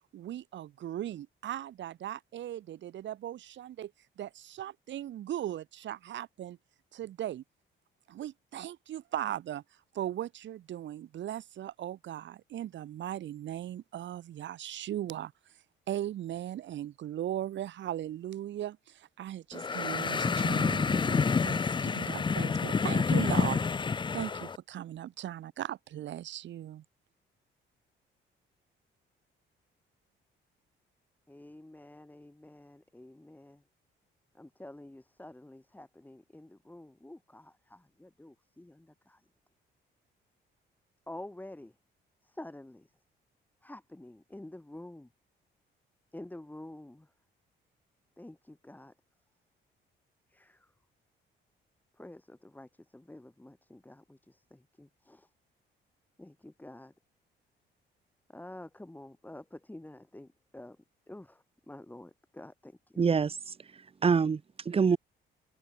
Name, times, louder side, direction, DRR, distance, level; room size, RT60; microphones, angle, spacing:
voice 1, 0.1-6.6 6.9-7.4 8.1-9.6 9.9-15.3 15.9-23.7 24.1-26.8, right 12 dB, 65° right, 1.1 m, -38 dB
sound 1, 19.5-24.6, left 5 dB, 25° left, 0.5 m, -28 dB
voice 2, 31.3-33.6 34.3-39.2 41.1-41.7 42.2-42.9 43.6-45.1 46.1-47.1 48.2-48.9 50.3-50.7 52.0-55.3 56.2-56.9 58.3-60.8 61.1-63.0, left 1 dB, 10° left, 2.7 m, -49 dB
voice 3, 63.0-63.5 64.0-65.0, right 5 dB, 30° right, 0.7 m, -26 dB
cardioid pair, 90°, 20 cm